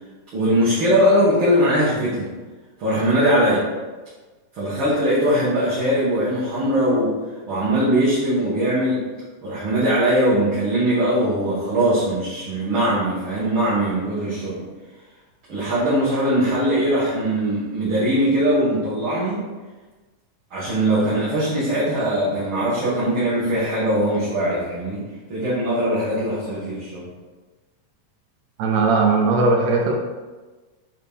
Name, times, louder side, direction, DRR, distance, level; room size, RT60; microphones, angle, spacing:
voice 1, 0.3-2.3 2.8-3.7 4.5-7.2 7.5-9.0 9.4-14.6 15.5-19.4 20.5-25.0 25.3-27.1, right 1 dB, 50° right, -10 dB, 2.0 m, -21 dB
voice 2, 28.6-29.9, right 3 dB, 75° right, 0 dB, 1.7 m, -18 dB
8.5 x 3.2 x 3.5 m, 1.3 s
omnidirectional pair, 3.5 m